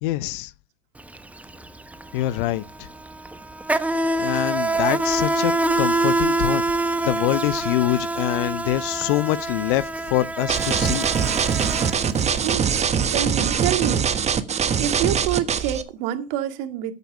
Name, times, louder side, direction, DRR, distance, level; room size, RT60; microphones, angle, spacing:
voice 1, 0.0-0.5 2.1-2.9 4.2-11.1, left 16 dB, 55° left, 0.7 m, -25 dB
Insect, 1.0-1.2 1.4-12.4, right 2 dB, 5° right, 0.9 m, -25 dB
sound 1, 10.5-15.8, right 7 dB, 20° right, 1.3 m, -22 dB
voice 2, 12.4-14.1 14.8-16.9, right 11 dB, 55° right, 2.1 m, -27 dB
13.5 x 8.3 x 4.8 m
hypercardioid pair, 100°, 30 cm